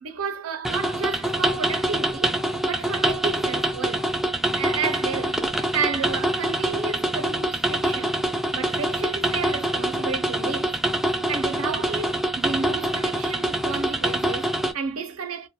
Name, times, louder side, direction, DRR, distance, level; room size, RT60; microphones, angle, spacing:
voice 1, 0.0-2.4 2.6-4.1 4.6-8.2 8.5-10.8 11.3-15.5, right 5 dB, 85° right, 0.6 m, -31 dB
sound 1, 0.6-14.7, right 1 dB, ahead, 0.3 m, -25 dB
2.2 x 2.2 x 2.8 m
head